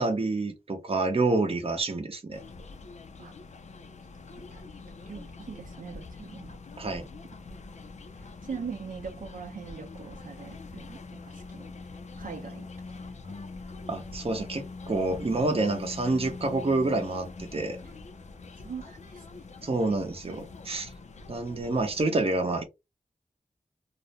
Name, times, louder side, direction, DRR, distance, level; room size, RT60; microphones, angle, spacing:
voice 1, 0.0-2.4 6.8-7.1 13.9-17.8 19.6-20.9 21.3-22.6, right 2 dB, 45° right, 0.6 m, -28 dB
sound 1, 2.3-22.0, left 3 dB, 55° left, 0.4 m, -44 dB
voice 2, 4.3-4.6 5.1-6.5 8.2-11.7 12.2-13.3 17.8-17.9 18.6-19.2, right 5 dB, 85° right, 0.5 m, -42 dB
2.4 x 2.0 x 2.7 m
wide cardioid pair, 85°, 14 cm